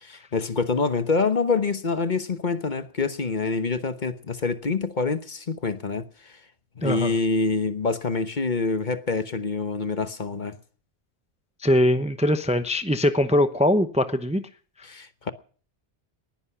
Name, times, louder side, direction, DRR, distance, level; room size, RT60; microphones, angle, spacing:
voice 1, 0.0-6.1 6.8-10.6 14.8-15.3, left 4 dB, 45° left, 1.2 m, -26 dB
voice 2, 6.8-7.1 11.6-14.4, left 1 dB, 5° right, 0.7 m, -22 dB
20.0 x 10.5 x 5.9 m
omnidirectional pair, 1.1 m